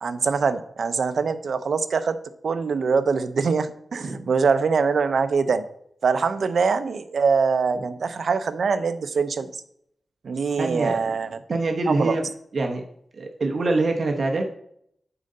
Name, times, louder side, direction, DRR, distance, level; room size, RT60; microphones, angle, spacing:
voice 1, 0.0-2.2 2.4-5.6 6.0-9.5 10.2-11.3 11.9-12.2, right 5 dB, 65° right, 10 dB, 0.6 m, -23 dB
voice 2, 10.6-11.0 11.5-12.3 12.5-12.8 13.2-14.4, right 2 dB, 50° right, 2 dB, 0.9 m, -24 dB
8.7 x 3.9 x 5.4 m, 0.70 s
wide cardioid pair, 150°, 0 cm